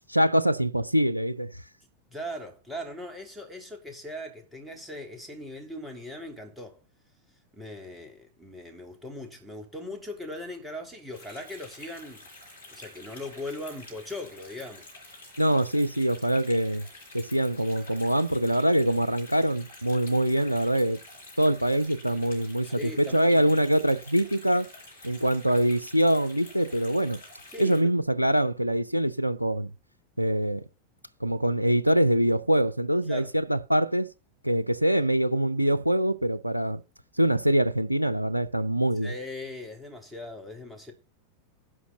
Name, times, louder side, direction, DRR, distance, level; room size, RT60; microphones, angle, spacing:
voice 1, 0.1-1.5 15.4-16.9 17.1-21.0 21.4-24.7 25.0-27.2 27.6-29.7 30.2-30.6 31.2-34.1 34.4-36.8 37.2-39.1, right 1 dB, 90° right, 0.6 m, -24 dB
voice 2, 2.1-6.8 7.5-12.3 12.7-14.9 22.6-23.6 27.5-27.9 33.1-33.3 39.0-40.9, left 1 dB, 5° right, 3.2 m, -39 dB
sound 1, 11.1-27.8, left 2 dB, 70° left, 4.5 m, -48 dB
11.0 x 4.8 x 6.9 m
figure-of-eight pair, 90°, 0 cm